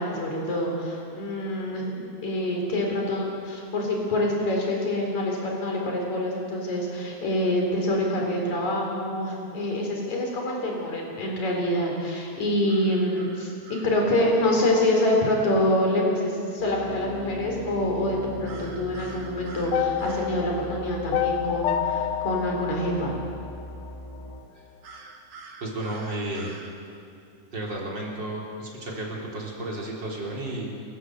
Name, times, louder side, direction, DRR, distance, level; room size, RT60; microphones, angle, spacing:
voice 1, 0.0-13.5 13.8-23.2, left 1 dB, 65° left, 0 dB, 5.3 m, -26 dB
sound 1, 12.7-14.0 18.5-20.4 24.8-26.7, right 4 dB, 85° right, 3.6 m, -45 dB
sound 2, 16.6-24.4, left 1 dB, 10° left, 2.1 m, -41 dB
sound 3, 19.7-23.9, left 10 dB, 90° left, 2.5 m, -29 dB
voice 2, 25.6-26.5 27.5-30.7, right 1 dB, 35° right, -2 dB, 4.2 m, -32 dB
29.0 x 13.5 x 8.0 m, 2.5 s
omnidirectional pair, 3.5 m